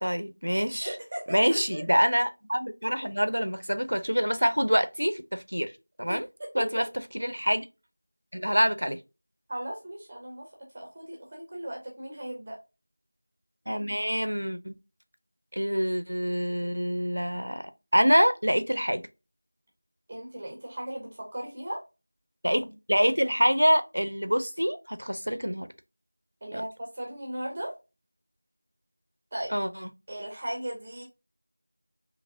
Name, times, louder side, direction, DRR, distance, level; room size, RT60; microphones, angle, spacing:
voice 1, 0.0-0.9 1.3-5.7 6.0-6.3 6.5-6.8 7.1-7.7 8.3-9.0 13.7-14.8 15.5-19.0 22.4-25.7 26.5-26.6 29.5-29.9, equal, 85° right, 0.6 m, -26 dB
voice 2, 0.8-1.8 6.1-6.9 9.5-12.6 20.1-21.8 26.4-27.7 29.3-29.5 30.1-31.0, right 1 dB, 10° right, 0.6 m, -37 dB
4.0 x 2.9 x 2.6 m
figure-of-eight pair, 180°, 0 cm